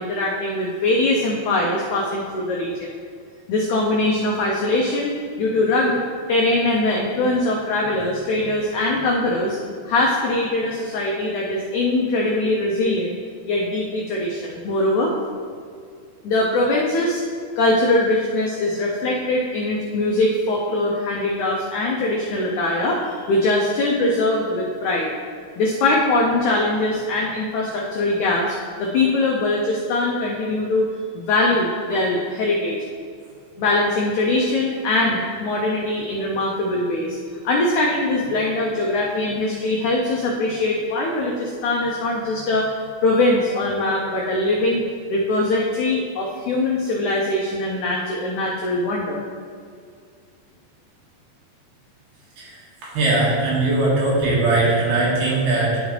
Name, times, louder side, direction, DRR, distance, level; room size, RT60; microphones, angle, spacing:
voice 1, 0.0-2.9 3.5-5.1 5.4-6.0 6.3-9.6 9.8-13.2 13.5-15.1 16.2-17.2 17.6-25.1 25.6-28.5 28.8-32.8 33.6-37.2 37.4-42.7 43.0-44.8 45.1-49.2, left 2 dB, 85° left, -2 dB, 1.7 m, -22 dB
voice 2, 52.4-55.8, right 2 dB, 85° right, -6 dB, 3.8 m, -20 dB
11.0 x 5.1 x 3.2 m, 2.2 s
omnidirectional pair, 4.4 m